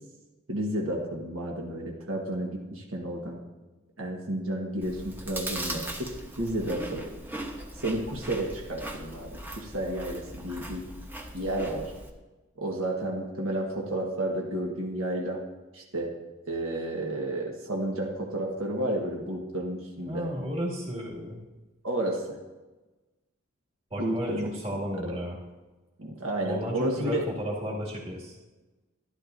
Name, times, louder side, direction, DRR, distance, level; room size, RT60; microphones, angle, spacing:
voice 1, 0.5-3.4 4.0-7.1 7.8-10.8 11.3-11.9 12.6-15.4 15.7-16.2 16.5-20.3 21.8-22.4 24.0-24.5 26.0-27.2, right 1 dB, 75° right, -1 dB, 1.4 m, -31 dB
Chewing mastication, 4.8-12.1, right 1 dB, 10° right, 0.9 m, -39 dB
voice 2, 20.0-21.4 23.9-25.4 26.4-28.4, equal, 30° right, -3 dB, 2.2 m, -33 dB
12.0 x 11.5 x 2.6 m, 1.2 s
head